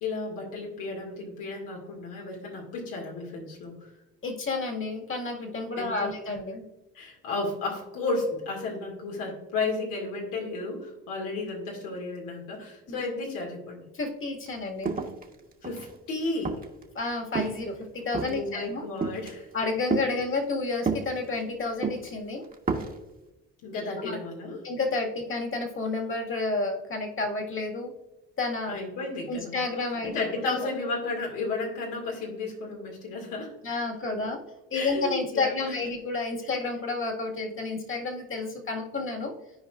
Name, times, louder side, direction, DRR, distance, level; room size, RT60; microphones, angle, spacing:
voice 1, 0.0-3.8 5.8-6.2 6.9-13.8 15.6-16.5 18.2-19.5 23.6-24.6 28.7-29.6 30.0-33.5 34.7-35.8, left 3 dB, 80° left, -1 dB, 2.2 m, -33 dB
voice 2, 4.2-6.7 12.9-13.0 13.9-14.9 16.9-18.8 19.5-22.5 24.0-24.2 24.6-27.9 28.4-28.8 29.3-30.7 33.6-34.4 34.7-39.3, left 3 dB, 40° left, 1 dB, 2.0 m, -30 dB
sound 1, 14.5-14.6 14.8-15.9 16.4-16.8 17.3-17.7 18.1-18.5 19.0-19.3 19.9-20.1 20.9-21.4 21.8-22.1 22.5-23.0, right 4 dB, 25° right, 1.4 m, -30 dB
14.0 x 4.8 x 2.5 m, 1.0 s
supercardioid pair, 65°, 31 cm